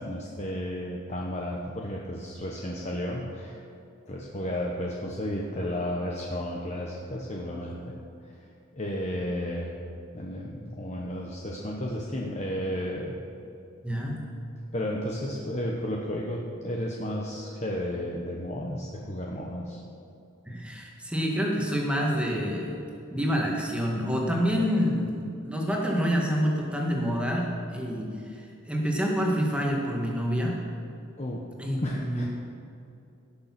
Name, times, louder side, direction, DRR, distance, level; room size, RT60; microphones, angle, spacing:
voice 1, 0.0-3.6 4.1-8.4 8.7-9.8 10.1-13.2 14.7-19.8 31.2-31.4 31.8-32.3, equal, 35° left, -2 dB, 1.0 m, -33 dB
voice 2, 13.8-14.2 20.5-22.8 23.1-30.6 31.6-32.3, equal, 5° right, -1 dB, 1.7 m, -27 dB
17.0 x 6.8 x 5.9 m, 2.7 s
head